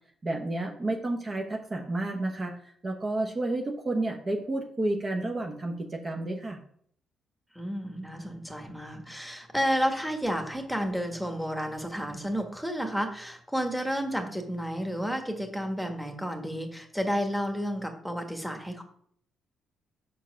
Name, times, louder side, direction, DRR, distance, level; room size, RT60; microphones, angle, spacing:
voice 1, 0.2-6.6, right 2 dB, 30° right, 2 dB, 1.0 m, -31 dB
voice 2, 7.5-18.8, equal, ahead, 4 dB, 1.4 m, -31 dB
5.7 x 4.5 x 6.3 m, 0.62 s
cardioid pair, 90°, 0 cm